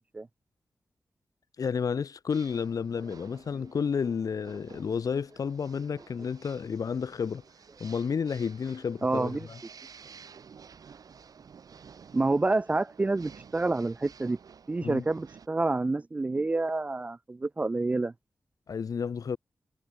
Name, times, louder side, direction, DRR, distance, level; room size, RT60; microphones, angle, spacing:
voice 1, 1.6-7.4 7.8-9.6 14.8-15.0 18.7-19.4, left 6 dB, 70° left, 2.3 m, -31 dB
sound 1, 2.3-15.5, right 6 dB, 85° right, 3.4 m, -53 dB
voice 2, 9.0-9.5 12.1-14.4 14.7-18.1, right 2 dB, 25° right, 0.4 m, -28 dB
wide cardioid pair, 180°, 6 cm